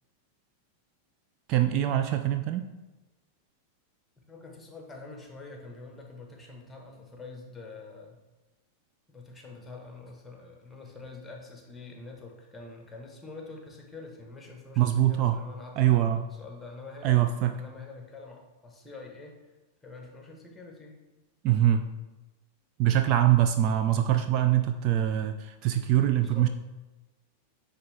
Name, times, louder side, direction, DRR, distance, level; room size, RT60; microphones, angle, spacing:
voice 1, 1.5-2.7 14.8-15.4 15.8-16.2 17.0-17.5 21.4-21.9 22.8-26.5, right 12 dB, 40° right, 7 dB, 0.4 m, -23 dB
voice 2, 4.2-8.2 9.1-17.2 17.5-19.4 19.8-21.0 26.0-26.5, left 3 dB, 10° left, 1 dB, 1.4 m, -45 dB
9.5 x 3.7 x 3.4 m, 1.1 s
figure-of-eight pair, 90°, 0 cm